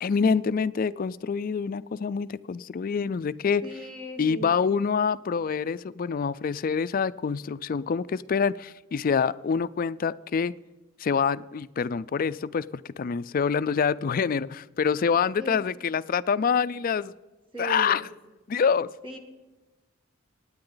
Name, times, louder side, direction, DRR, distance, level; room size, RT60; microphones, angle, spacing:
voice 1, 0.0-3.6 4.2-10.5 11.0-12.6 13.0-17.1 17.6-18.1 18.5-18.9, left 6 dB, 45° left, 17 dB, 0.4 m, -26 dB
voice 2, 3.6-4.5 15.4-15.6 17.5-18.0 19.0-19.2, right 2 dB, 25° right, 3 dB, 1.8 m, -37 dB
25.5 x 9.5 x 3.9 m, 1.1 s
head